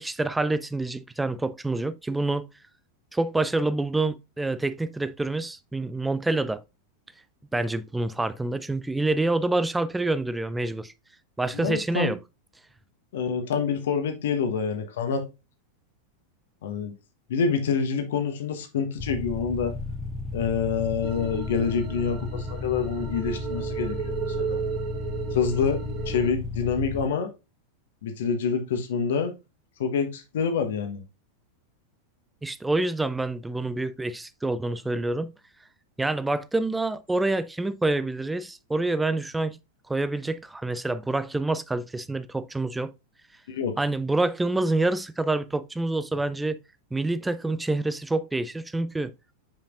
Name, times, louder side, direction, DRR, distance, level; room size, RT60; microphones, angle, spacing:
voice 1, 0.0-2.5 3.1-6.6 7.5-10.9 11.4-12.2 32.4-35.3 36.0-39.6 39.9-42.9 43.8-46.6 46.9-49.1, right 2 dB, 5° right, 0.5 m, -27 dB
voice 2, 11.5-12.1 13.1-15.3 16.6-16.9 17.3-19.8 20.3-24.6 25.3-27.3 28.0-29.3 29.8-31.0 43.5-43.8, left 6 dB, 60° left, 1.2 m, -27 dB
sound 1, 19.0-27.0, left 3 dB, 10° left, 1.1 m, -34 dB
sound 2, 21.0-26.3, right 8 dB, 35° right, 1.6 m, -35 dB
7.4 x 5.2 x 2.5 m
figure-of-eight pair, 90°, 0 cm